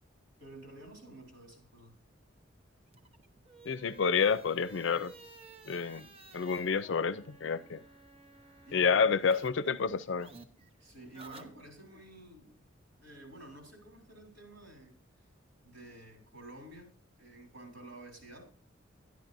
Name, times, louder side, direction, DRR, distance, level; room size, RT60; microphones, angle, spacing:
voice 1, 0.4-2.0 8.7-9.1 10.8-12.6 13.0-15.0 15.6-18.4, right 1 dB, 70° right, 3.8 m, -51 dB
sound 1, 2.9-9.5 9.8-12.0, right 2 dB, 30° right, 0.8 m, -54 dB
voice 2, 3.6-5.1 5.7-6.1 6.3-7.8 8.7-10.3, left 5 dB, 70° left, 0.5 m, -29 dB
11.5 x 10.5 x 2.6 m
head